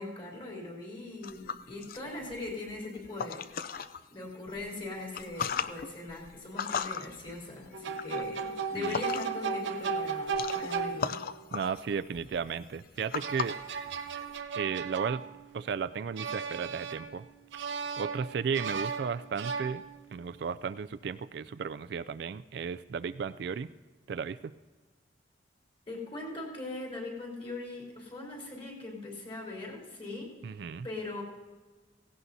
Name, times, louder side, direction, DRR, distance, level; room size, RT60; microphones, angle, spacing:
voice 1, 0.0-3.4 4.1-11.1 25.9-30.3 30.8-31.2, left 2 dB, 30° left, -2 dB, 3.6 m, -40 dB
sound 1, 1.2-4.0 4.5-9.5 9.8-14.4, left 6 dB, 50° left, 0.4 m, -38 dB
sound 2, 7.7-11.4 13.0-15.7 16.2-17.2 17.5-20.2, right 5 dB, 85° right, 0.8 m, -36 dB
voice 2, 11.5-13.6 14.5-15.2 15.5-17.2 18.0-19.8 20.1-23.7 24.1-24.4 30.4-30.9, right 6 dB, 60° right, 13 dB, 0.3 m, -34 dB
17.0 x 16.5 x 2.7 m, 1.3 s
head